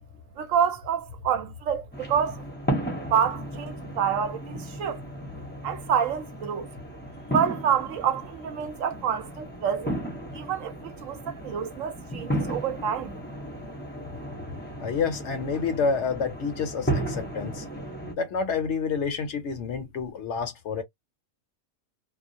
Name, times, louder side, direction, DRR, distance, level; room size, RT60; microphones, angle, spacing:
voice 1, 0.4-2.4 3.1-5.0 5.6-6.7 7.3-10.0 10.3-13.2, right 8 dB, 75° right, 0.9 m, -27 dB
sound 1, 1.9-18.1, right 1 dB, 10° left, 0.5 m, -34 dB
voice 2, 14.8-17.7 18.2-20.8, left 5 dB, 65° left, 0.8 m, -28 dB
2.3 x 2.0 x 2.5 m
omnidirectional pair, 1.4 m